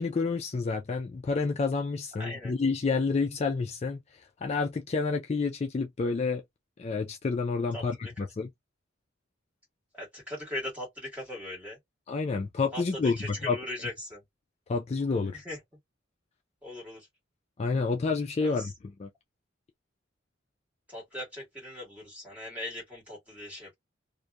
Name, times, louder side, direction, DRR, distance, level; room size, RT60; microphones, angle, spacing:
voice 1, 0.0-6.4 6.8-8.5 12.1-13.6 14.7-15.4 17.6-18.7 19.0-19.1, left 4 dB, 35° left, 0.3 m, -29 dB
voice 2, 2.2-2.5 7.7-8.1 9.9-11.8 12.7-14.2 15.3-15.6 16.6-17.1 18.4-18.7 20.9-23.8, left 1 dB, 10° right, 1.5 m, -39 dB
2.8 x 2.1 x 2.3 m
head